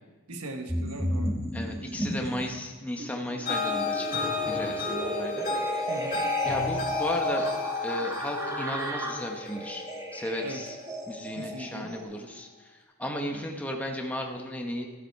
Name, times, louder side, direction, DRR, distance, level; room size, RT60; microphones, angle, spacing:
voice 1, 0.3-1.4 5.9-6.3 10.4-10.6 11.4-11.9, right 1 dB, 85° right, 4 dB, 1.2 m, -39 dB
sound 1, 0.7-2.6 3.0-12.0, right 1 dB, 15° right, 1.1 m, -34 dB
voice 2, 1.5-5.5 5.8-7.5 7.8-9.8 10.1-10.8 11.1-14.9, equal, 5° left, 1 dB, 0.9 m, -35 dB
sound 2, 3.4-10.6, left 4 dB, 40° left, 2.1 m, -31 dB
13.0 x 7.6 x 4.6 m, 1.3 s
head